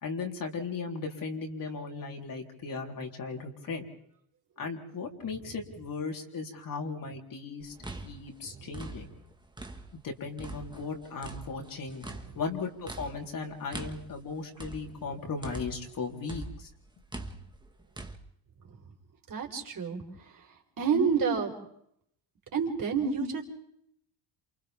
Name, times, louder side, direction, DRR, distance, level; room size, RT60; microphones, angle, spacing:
voice 1, 0.0-3.9 4.6-7.7 8.0-9.1 10.0-12.1 12.4-16.7, left 4 dB, 45° left, 2 dB, 4.1 m, -37 dB
sound 1, 7.6-10.1 10.4-16.0 16.3-18.2, right 2 dB, 10° right, 1.8 m, -43 dB
voice 2, 19.3-20.0 20.8-21.5 22.5-23.4, right 6 dB, 45° right, 2 dB, 4.9 m, -29 dB
28.5 x 28.0 x 3.7 m, 0.71 s
cardioid pair, 95°, 45 cm